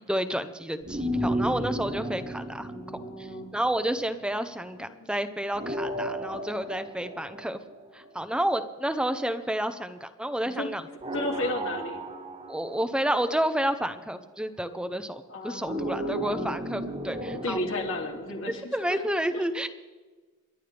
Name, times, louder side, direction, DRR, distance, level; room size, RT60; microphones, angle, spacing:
voice 1, 0.1-2.7 3.2-7.6 7.9-10.8 12.5-17.6 18.7-19.7, right 1 dB, 5° right, 10 dB, 0.7 m, -30 dB
sound 1, 0.8-4.1 5.5-8.4 11.0-13.6 15.7-18.5, equal, 30° right, 1.4 m, -34 dB
voice 2, 2.6-3.5 4.8-5.1 10.4-10.7 11.1-12.0 15.3-16.6 17.4-19.0 19.3-19.4, left 1 dB, 60° left, 0 dB, 2.9 m, -34 dB
27.5 x 12.0 x 3.5 m, 1.3 s
head